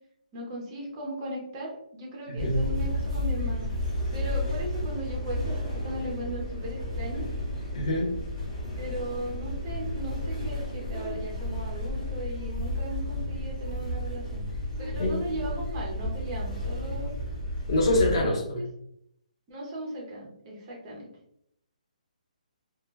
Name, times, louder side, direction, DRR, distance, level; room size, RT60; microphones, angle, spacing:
voice 1, 0.3-3.7 4.1-7.3 8.8-14.4 14.8-17.2 18.1-18.6 19.5-21.1, right 1 dB, 15° right, -3 dB, 0.5 m, -37 dB
voice 2, 2.3-2.6 7.7-8.1 15.0-15.2 17.7-18.6, left 1 dB, 35° left, -1 dB, 0.8 m, -25 dB
sound 1, 2.4-18.2, left 1 dB, 5° left, 0.9 m, -32 dB
2.2 x 2.1 x 3.2 m, 0.74 s
hypercardioid pair, 175°, 4 cm